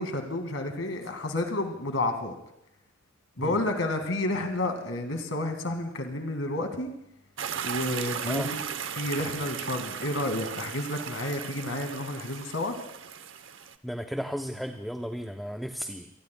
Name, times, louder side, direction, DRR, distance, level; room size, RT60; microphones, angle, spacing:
voice 1, 0.0-2.3 3.4-6.9 7.6-8.6 8.9-12.8, left 1 dB, 90° left, 5 dB, 1.9 m, -30 dB
sound 1, 7.4-13.8, right 7 dB, 70° right, 0.8 m, -36 dB
voice 2, 13.8-16.1, equal, ahead, 4 dB, 0.6 m, -34 dB
26.5 x 19.5 x 2.2 m, 0.80 s
head